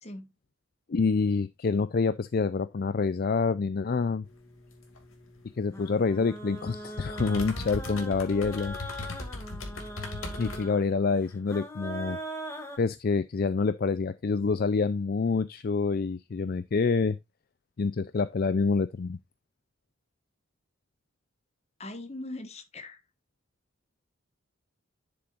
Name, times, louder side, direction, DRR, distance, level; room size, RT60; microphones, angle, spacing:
voice 1, 0.9-4.3 5.6-8.8 10.4-12.2 12.8-17.2 17.8-19.2, left 4 dB, 45° left, 0.4 m, -27 dB
sound 1, 4.3-10.7, left 2 dB, 85° left, 2.4 m, -40 dB
sound 2, 5.7-12.8, right 1 dB, 15° left, 2.0 m, -41 dB
voice 2, 21.8-23.0, left 2 dB, 30° left, 1.3 m, -40 dB
11.5 x 6.9 x 2.5 m
head